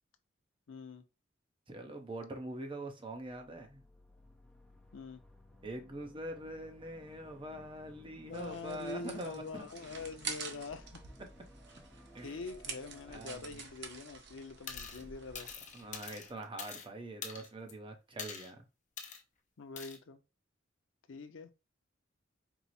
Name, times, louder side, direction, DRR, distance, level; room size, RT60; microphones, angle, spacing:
voice 1, 0.7-1.0 4.9-5.2 8.3-11.0 12.2-15.5 19.6-20.2 21.1-21.5, left 4 dB, 85° left, 0.6 m, -44 dB
voice 2, 1.7-3.8 5.6-9.7 12.1-12.4 13.1-13.5 15.0-15.1 15.7-18.7, right 1 dB, 25° right, 0.8 m, -44 dB
sound 1, 3.1-13.4, left 1 dB, 5° left, 0.6 m, -58 dB
sound 2, 8.3-16.3, right 5 dB, 65° right, 0.8 m, -48 dB
sound 3, 14.7-15.0 15.3-16.9 17.2-17.7 18.2-18.5 19.0-19.2 19.8-20.0, left 6 dB, 40° left, 0.7 m, -44 dB
4.6 x 2.0 x 4.1 m
head